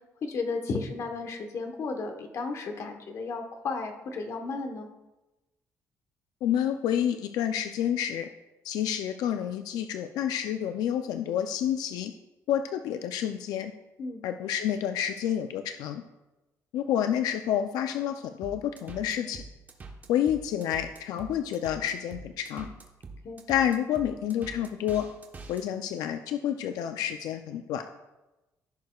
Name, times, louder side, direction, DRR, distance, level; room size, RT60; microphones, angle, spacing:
voice 1, 0.2-4.9 14.0-14.2 23.2-23.4, left 4 dB, 50° left, 5 dB, 1.1 m, -34 dB
voice 2, 6.4-8.3 8.6-12.1 12.5-13.7 14.2-16.0 16.7-19.4 20.1-22.7 23.5-25.1 25.5-27.8, left 10 dB, 90° left, 7 dB, 0.4 m, -29 dB
sound 1, 18.4-25.6, right 3 dB, 30° right, 1.0 m, -44 dB
15.0 x 6.6 x 2.3 m, 1.0 s
cardioid pair, 145°, 6 cm